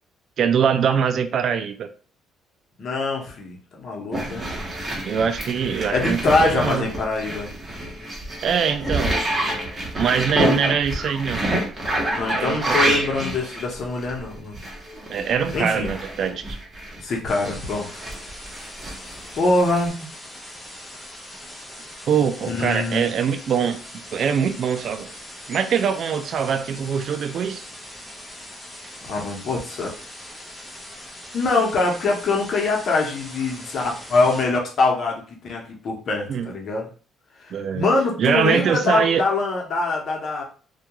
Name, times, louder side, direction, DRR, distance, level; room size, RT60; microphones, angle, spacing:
voice 1, 0.4-1.9 5.0-6.9 8.4-9.1 10.0-11.5 12.3-13.0 15.1-16.6 22.1-23.8 24.1-25.1 25.5-27.7 36.3-36.5 37.5-37.9 38.2-39.2, right 7 dB, 60° right, 9 dB, 0.3 m, -23 dB
voice 2, 2.8-4.5 5.9-7.5 12.1-14.6 15.5-15.9 17.0-17.9 19.3-20.1 22.4-23.1 29.0-29.9 31.3-36.9 37.4-40.4, left 3 dB, 55° left, 0 dB, 0.8 m, -24 dB
sound 1, 4.1-17.0 17.4-19.9, right 1 dB, 30° right, 1.0 m, -27 dB
sound 2, 17.3-34.4, left 1 dB, 10° left, 0.8 m, -41 dB
2.3 x 2.2 x 2.9 m, 0.40 s
cardioid pair, 85°, 0 cm